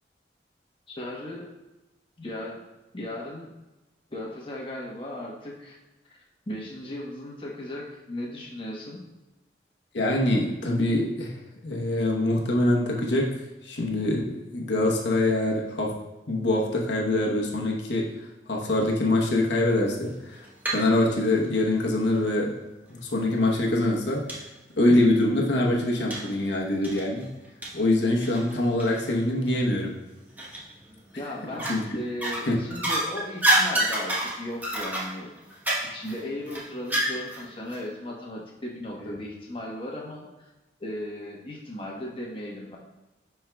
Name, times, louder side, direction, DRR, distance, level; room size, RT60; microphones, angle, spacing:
voice 1, 0.9-1.5 2.2-2.6 2.9-3.5 4.1-5.8 6.0-9.0 31.1-35.3 35.9-40.5 40.8-42.8, left 1 dB, 30° left, -3 dB, 1.1 m, -36 dB
voice 2, 9.9-11.4 11.6-16.0 16.3-18.1 18.5-22.6 22.9-24.3 24.8-27.3 27.7-30.0 31.7-32.6 39.0-39.2, left 1 dB, 90° left, -2 dB, 1.0 m, -24 dB
sound 1, 20.1-20.9 21.2-22.3 23.0-23.1 23.6-23.7 24.3-24.4 24.8-24.9 26.1-26.3 26.8-29.1 29.5-29.6 30.4-30.9 31.4-31.9 32.2-37.4 37.7-37.8, right 1 dB, 10° right, 1.0 m, -28 dB
10.0 x 4.5 x 2.3 m, 1.0 s
head